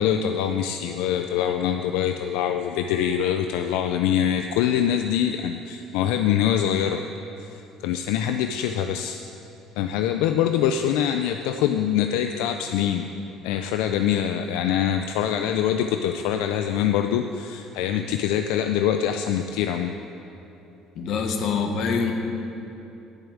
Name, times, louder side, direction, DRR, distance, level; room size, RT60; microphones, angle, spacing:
voice 1, 0.0-7.0 7.4-9.2 9.8-13.1 13.4-19.9, left 9 dB, 85° left, 7 dB, 0.4 m, -24 dB
voice 2, 20.9-22.1, left 5 dB, 60° left, 4 dB, 1.3 m, -25 dB
9.1 x 7.0 x 8.7 m, 2.9 s
cardioid pair, 125°, 0 cm